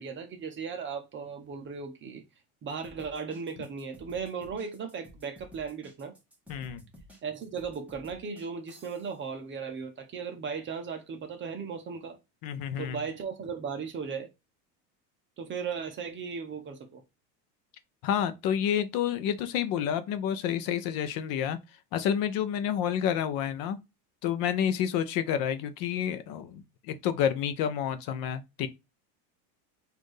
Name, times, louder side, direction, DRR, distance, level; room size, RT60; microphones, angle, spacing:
voice 1, 0.0-2.2 2.6-6.1 7.2-12.2 12.8-14.3 15.4-17.0, right 6 dB, 25° right, 0.7 m, -37 dB
sound 1, 2.7-9.2, right 1 dB, 5° right, 1.2 m, -53 dB
voice 2, 6.5-6.8 12.4-13.0 18.0-21.6 21.9-23.8 24.2-28.7, left 9 dB, 50° left, 0.7 m, -29 dB
4.2 x 2.6 x 3.1 m
supercardioid pair, 130°, 46 cm